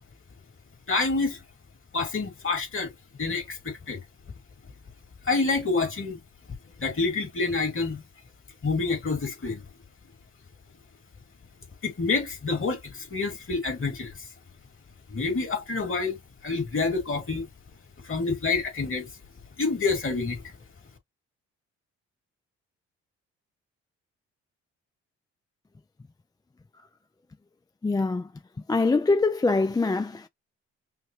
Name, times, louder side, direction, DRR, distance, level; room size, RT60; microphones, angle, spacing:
voice 1, 0.9-1.4 1.9-2.9 3.2-4.0 5.2-6.2 6.8-8.0 8.6-9.6 11.8-14.3 15.1-16.2 16.4-17.5 18.0-19.1 19.6-20.4, left 4 dB, 45° left, 2.6 m, -27 dB
voice 2, 27.8-28.3 28.7-30.3, left 3 dB, 15° left, 0.4 m, -23 dB
5.7 x 2.2 x 3.2 m
cardioid pair, 70°, 29 cm